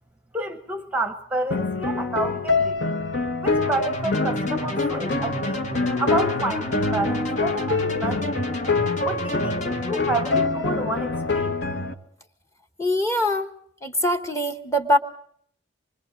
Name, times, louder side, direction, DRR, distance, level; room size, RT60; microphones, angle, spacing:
voice 1, 0.3-2.8 3.4-5.7 6.0-8.4 9.0-9.6 9.9-11.6, right 2 dB, 5° right, 0.9 m, -29 dB
sound 1, 1.5-11.9, left 3 dB, 60° left, 1.4 m, -25 dB
sound 2, 3.6-10.5, left 2 dB, 35° left, 1.6 m, -31 dB
voice 2, 12.8-13.5 13.8-15.0, left 1 dB, 15° left, 1.1 m, -22 dB
25.5 x 24.0 x 5.2 m
head